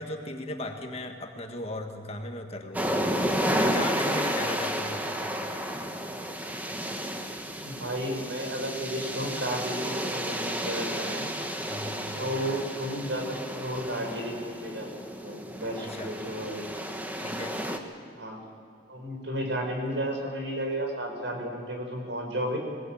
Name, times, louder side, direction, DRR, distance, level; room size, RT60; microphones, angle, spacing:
voice 1, 0.0-3.1 3.5-5.6 11.6-12.1 15.8-16.2 17.2-17.6, left 1 dB, 30° left, 4 dB, 1.7 m, -37 dB
sound 1, 2.7-17.8, equal, 10° right, 1.3 m, -32 dB
voice 2, 7.6-11.3 12.1-16.7 18.2-18.4 18.9-22.6, equal, 75° right, 3 dB, 4.8 m, -33 dB
21.0 x 19.0 x 8.9 m, 2.4 s
head